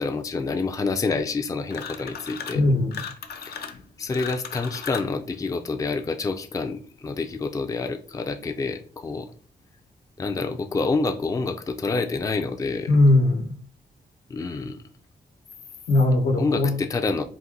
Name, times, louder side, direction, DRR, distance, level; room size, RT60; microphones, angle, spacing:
voice 1, 0.0-2.6 3.5-3.6 4.0-9.3 10.2-12.9 14.3-14.8 16.4-17.2, left 3 dB, 20° left, 6 dB, 0.4 m, -27 dB
sound 1, 1.7-2.6 2.9-5.1, left 6 dB, 70° left, 0.6 m, -36 dB
voice 2, 2.5-3.0 12.9-13.6 15.9-16.7, left 2 dB, 90° left, 2 dB, 1.1 m, -19 dB
4.1 x 2.5 x 3.8 m, 0.42 s
wide cardioid pair, 135°, 17 cm